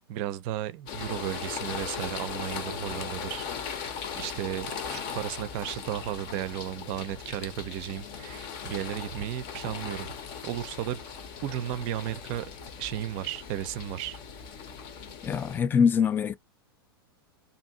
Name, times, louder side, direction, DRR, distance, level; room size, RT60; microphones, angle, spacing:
voice 1, 0.1-10.1 10.4-11.0 11.4-12.5 12.8-14.2, right 12 dB, 45° right, 0.5 m, -34 dB
sound 1, 0.9-15.6, left 6 dB, 40° left, 0.7 m, -38 dB
voice 2, 15.2-16.3, left 6 dB, 15° left, 0.3 m, -23 dB
2.7 x 2.7 x 2.6 m
hypercardioid pair, 105°, 13 cm